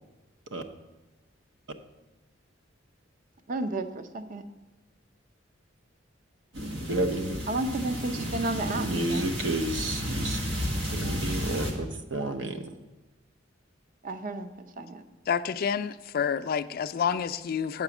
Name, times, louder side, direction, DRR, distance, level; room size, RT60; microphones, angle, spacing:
voice 1, 3.5-4.4 7.5-9.3 14.0-15.0, right 2 dB, 45° right, 10 dB, 0.5 m, -32 dB
sound 1, 6.5-11.7, equal, 90° right, 1.7 m, -32 dB
voice 2, 6.9-7.4 8.7-10.4 10.9-12.8, right 2 dB, 75° right, 7 dB, 0.8 m, -31 dB
voice 3, 15.3-17.8, left 7 dB, 50° left, 13 dB, 0.3 m, -28 dB
7.9 x 5.0 x 7.1 m, 1.1 s
head